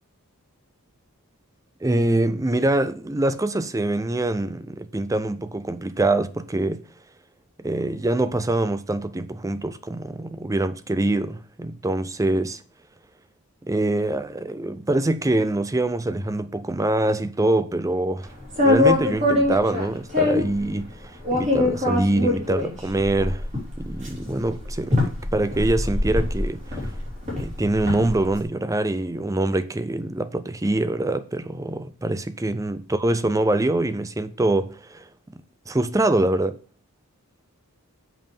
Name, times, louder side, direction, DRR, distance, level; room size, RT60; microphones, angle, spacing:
voice 1, 1.8-6.8 7.6-12.6 13.6-18.3 18.6-23.5 23.8-26.9 27.4-35.0 35.7-36.6, right 2 dB, 15° right, 0.5 m, -24 dB
sound 1, 18.4-20.6 21.2-28.3, left 2 dB, 30° right, 3.7 m, -23 dB
7.6 x 5.3 x 5.4 m
head